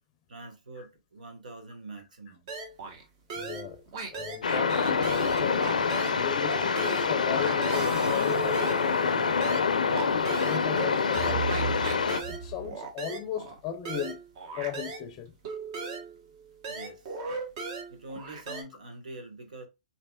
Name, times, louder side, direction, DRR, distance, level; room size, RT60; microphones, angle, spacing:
voice 1, 0.3-2.5 16.6-17.2 17.9-19.7, right 2 dB, 80° right, 1.1 m, -44 dB
sound 1, 2.5-3.0 3.3-6.2 6.5-15.1 15.4-18.6, right 4 dB, 45° right, 1.1 m, -38 dB
voice 2, 3.3-3.8 4.1-5.7 6.1-9.8 10.3-11.5 12.3-14.2 14.6-15.3, left 9 dB, 30° left, 0.5 m, -36 dB
sound 2, 4.4-12.2, left 5 dB, 85° left, 0.4 m, -26 dB
sound 3, 7.7-9.3 11.1-12.7, right 6 dB, 20° right, 1.2 m, -37 dB
4.1 x 2.8 x 2.2 m
hypercardioid pair, 130°, 4 cm